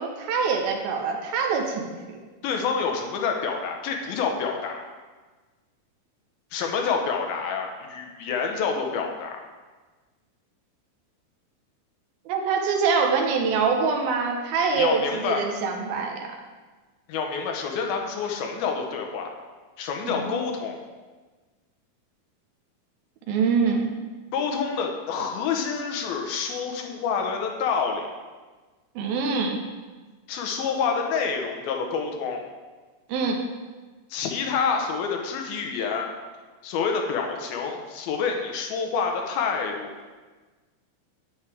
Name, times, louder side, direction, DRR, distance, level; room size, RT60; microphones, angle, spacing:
voice 1, 0.0-2.2 12.3-16.3 20.0-20.4 23.3-23.9 29.0-29.6 33.1-33.4, right 5 dB, 85° right, 2 dB, 2.8 m, -25 dB
voice 2, 2.4-4.8 6.5-9.4 14.8-15.4 17.1-19.3 19.8-20.8 24.3-28.1 30.3-32.4 34.1-36.1 36.6-39.9, left 5 dB, 90° left, 3 dB, 2.8 m, -27 dB
10.0 x 8.4 x 3.4 m, 1.3 s
omnidirectional pair, 4.2 m